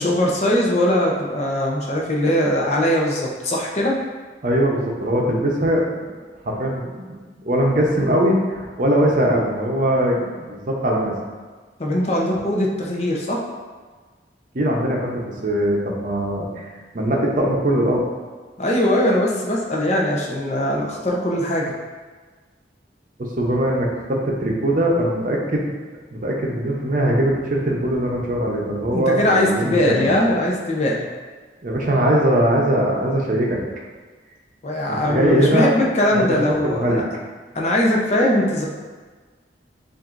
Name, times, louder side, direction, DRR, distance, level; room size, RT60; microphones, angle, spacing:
voice 1, 0.0-4.0 11.8-13.4 18.6-21.7 28.9-31.1 34.6-37.0 37.5-38.6, left 1 dB, 40° left, -2 dB, 0.7 m, -20 dB
voice 2, 4.4-6.1 6.4-11.1 14.5-16.7 16.9-18.0 23.2-25.7 26.1-30.1 31.6-33.6 34.9-35.7 36.1-36.4 36.6-37.0, right 1 dB, 45° right, -2 dB, 0.7 m, -21 dB
7.4 x 2.6 x 2.6 m, 1.4 s
head